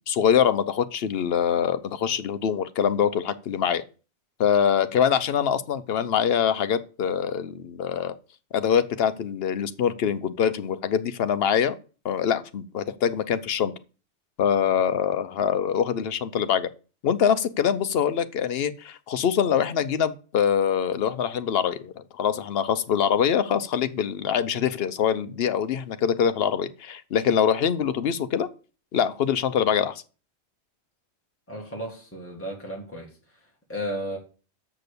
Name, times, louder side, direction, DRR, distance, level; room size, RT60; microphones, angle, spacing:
voice 1, 0.0-3.8 4.4-8.2 8.5-11.8 12.0-13.7 14.4-16.7 17.0-28.5 28.9-30.0, left 8 dB, 65° left, 0.9 m, -24 dB
voice 2, 31.5-33.4 33.7-34.2, equal, 10° left, 1.9 m, -34 dB
6.6 x 6.2 x 6.7 m
omnidirectional pair, 1.2 m